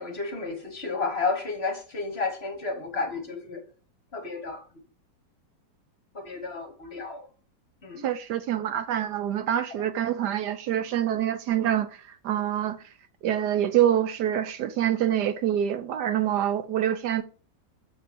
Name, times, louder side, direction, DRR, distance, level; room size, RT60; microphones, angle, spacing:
voice 1, 0.0-3.6 4.1-4.6 6.1-7.3 7.8-8.1, left 4 dB, 35° left, 1.5 m, -32 dB
voice 2, 8.0-12.8 13.2-17.2, right 10 dB, 70° right, 1.2 m, -26 dB
7.0 x 5.7 x 5.1 m
omnidirectional pair, 2.0 m